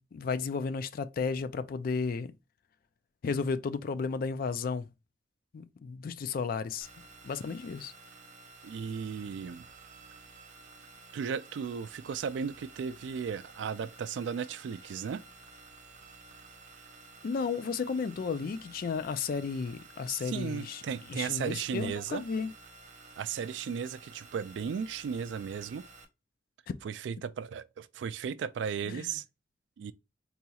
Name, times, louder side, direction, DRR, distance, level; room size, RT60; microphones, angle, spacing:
voice 1, 0.0-2.3 3.2-4.9 5.5-6.9 7.2-7.9 17.2-20.8 21.1-22.5 26.7-26.8 28.9-29.1, left 5 dB, 55° left, 0.3 m, -33 dB
sound 1, 6.8-26.1, right 3 dB, 45° right, 0.6 m, -53 dB
voice 2, 8.6-9.7 11.1-15.2 20.1-22.2 23.2-25.8 26.8-29.2 29.8-29.9, right 7 dB, 80° right, 0.3 m, -35 dB
4.0 x 2.8 x 2.3 m
head